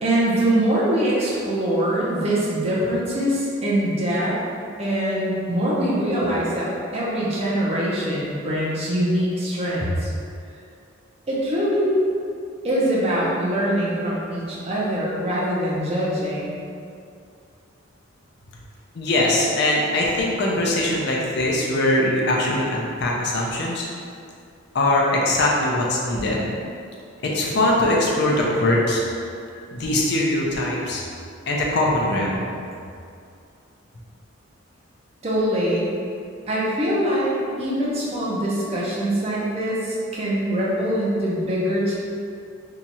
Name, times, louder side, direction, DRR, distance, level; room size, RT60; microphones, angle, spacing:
voice 1, 0.0-4.4 4.8-10.1 11.3-12.0 12.6-16.6 35.2-35.9 36.5-42.0, right 1 dB, 30° right, -7 dB, 0.6 m, -23 dB
voice 2, 18.9-23.9 24.7-26.5 27.3-29.1 29.7-31.0 31.5-32.4, left 1 dB, 55° left, -3 dB, 0.5 m, -21 dB
2.8 x 2.4 x 4.1 m, 2.4 s
head